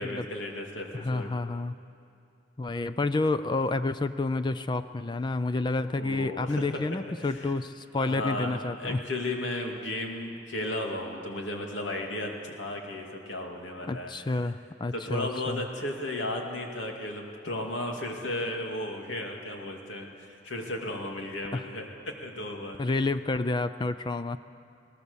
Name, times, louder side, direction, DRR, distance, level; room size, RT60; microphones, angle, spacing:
voice 1, 0.0-1.3 6.0-6.8 7.2-7.5 8.0-14.5 14.9-22.8, left 1 dB, 90° left, 1 dB, 2.6 m, -35 dB
voice 2, 0.9-1.7 2.6-9.0 13.9-15.7 21.5-21.6 22.8-24.4, left 3 dB, 25° left, 11 dB, 0.4 m, -29 dB
22.5 x 18.0 x 7.1 m, 2.5 s
head